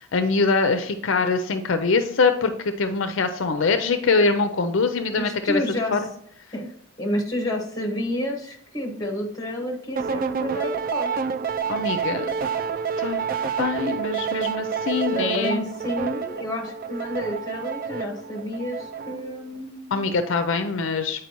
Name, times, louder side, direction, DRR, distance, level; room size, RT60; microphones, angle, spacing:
voice 1, 0.1-5.6 5.9-6.0 11.7-12.3 13.0-13.2 13.6-15.7 19.9-21.3, left 4 dB, 65° left, 8 dB, 0.5 m, -23 dB
voice 2, 5.1-6.0 6.5-6.7 7.0-11.1 15.1-20.1, left 1 dB, 20° left, 2 dB, 1.3 m, -30 dB
sound 1, 10.0-19.4, right 6 dB, 45° right, 0.3 m, -28 dB
8.2 x 4.8 x 3.0 m, 0.67 s
head